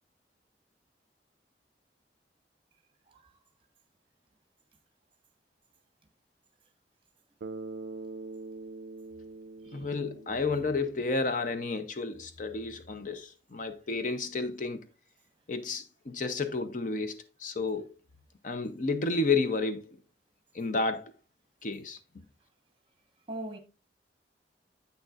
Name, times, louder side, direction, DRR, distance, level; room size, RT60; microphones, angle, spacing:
Bass guitar, 7.4-11.6, right 3 dB, 65° right, 0.4 m, -44 dB
voice 1, 9.7-14.8 15.5-17.9 18.4-20.0 20.5-21.1 21.6-22.0, left 3 dB, 45° left, 0.6 m, -31 dB
voice 2, 23.3-23.6, right 1 dB, 30° right, 1.1 m, -41 dB
8.2 x 6.4 x 2.4 m
head